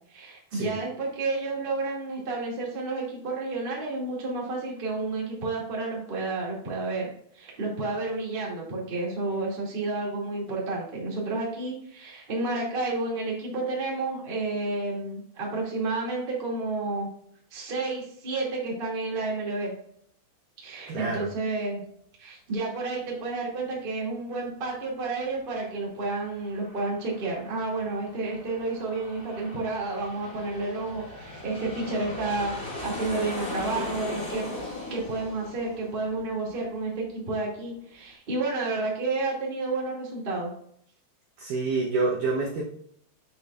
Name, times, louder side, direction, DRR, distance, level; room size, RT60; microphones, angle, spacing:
voice 1, 0.1-7.1 7.3-17.1 17.5-19.7 20.6-21.8 22.2-34.5 34.9-40.5, right 3 dB, 20° right, -4 dB, 1.3 m, -31 dB
voice 2, 20.9-21.3 41.4-42.6, right 3 dB, 75° right, -1 dB, 2.0 m, -27 dB
Aircraft, 26.0-37.2, left 2 dB, 15° left, 2.6 m, -39 dB
7.9 x 6.8 x 2.5 m, 0.66 s
omnidirectional pair, 5.0 m